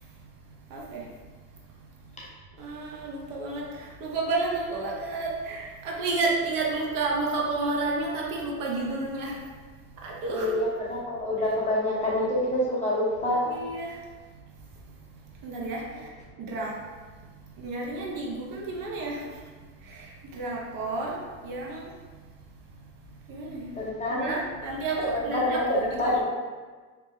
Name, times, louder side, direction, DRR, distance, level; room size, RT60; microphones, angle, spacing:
voice 1, 2.6-3.6 4.0-9.3 10.0-10.5 13.5-13.9 15.4-15.8 16.4-16.7 17.6-19.2 20.3-21.1 21.4-21.8 23.3-23.7 24.1-26.2, right 3 dB, 50° right, -2 dB, 0.7 m, -30 dB
voice 2, 10.3-13.5 23.8-24.3 25.0-26.2, left 1 dB, 15° left, -6 dB, 0.6 m, -27 dB
2.9 x 2.0 x 3.4 m, 1.4 s
supercardioid pair, 100°, 43 cm